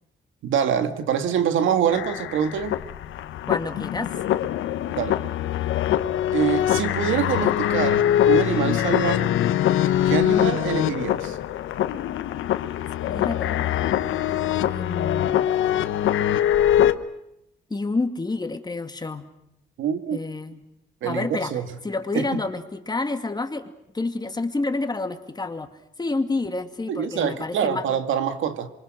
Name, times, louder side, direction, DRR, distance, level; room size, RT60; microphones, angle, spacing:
voice 1, 0.4-2.8 5.0-5.2 6.3-9.4 10.0-11.4 19.8-20.2 21.0-21.7 22.1-22.4 26.9-28.7, right 8 dB, 80° right, 2.0 m, -25 dB
sound 1, 1.9-16.9, left 11 dB, 80° left, 1.1 m, -23 dB
voice 2, 3.5-4.1 13.1-14.3 14.6-15.4 17.7-19.3 20.1-20.6 21.0-21.5 21.8-23.7 23.9-25.7 26.0-27.9, left 3 dB, 20° left, 2.3 m, -29 dB
27.0 x 24.0 x 6.2 m
cardioid pair, 90°, 20 cm